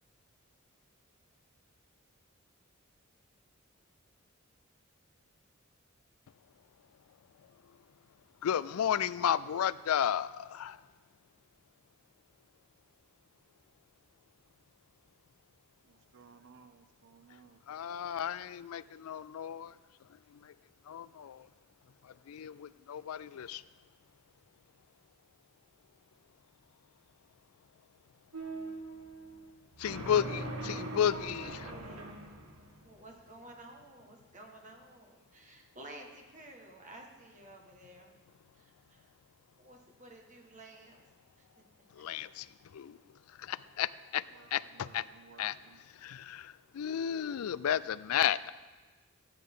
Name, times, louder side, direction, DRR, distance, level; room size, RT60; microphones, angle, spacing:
voice 1, 8.4-10.8 17.7-19.8 20.1-20.5 20.9-21.5 22.0-23.6 29.8-31.6 41.9-43.0 43.3-44.3 44.5-45.1 45.4-48.5, left 9 dB, 90° left, 0.4 m, -33 dB
voice 2, 16.1-17.6 44.3-44.5 44.8-45.8, right 5 dB, 55° right, 0.4 m, -58 dB
sound 1, 28.3-33.4, right 2 dB, 85° right, 1.5 m, -41 dB
voice 3, 30.7-32.2 32.8-38.1 38.5-39.1 39.6-41.0 41.3-41.6 42.0-42.3, right 1 dB, 35° right, 1.6 m, -53 dB
16.0 x 9.7 x 3.7 m
head